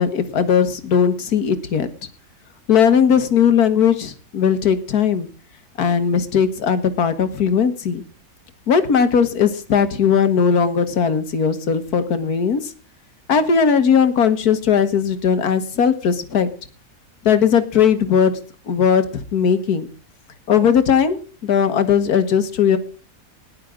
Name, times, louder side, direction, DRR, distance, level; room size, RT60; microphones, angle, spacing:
voice 1, 0.0-1.9 2.7-5.3 5.8-8.0 8.7-12.7 13.3-16.5 17.3-18.4 18.7-19.9 20.5-22.8, left 7 dB, 90° left, 11 dB, 1.8 m, -18 dB
18.0 x 10.5 x 3.7 m, 0.38 s
omnidirectional pair, 1.6 m